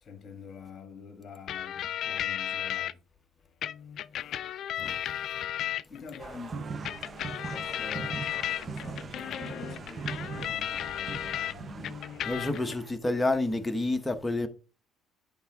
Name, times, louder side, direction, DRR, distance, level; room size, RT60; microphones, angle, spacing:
voice 1, 0.0-3.0 5.9-7.0 7.5-8.3 8.6-12.6, left 5 dB, 40° left, 1.4 m, -46 dB
sound 1, 1.5-2.9 3.6-6.2 6.8-11.5 11.8-12.8, left 11 dB, 60° left, 0.3 m, -34 dB
sound 2, 6.2-12.9, right 5 dB, 35° right, 0.5 m, -40 dB
voice 2, 12.3-14.5, left 2 dB, 10° left, 1.0 m, -29 dB
9.9 x 3.5 x 3.5 m
cardioid pair, 100°, 0 cm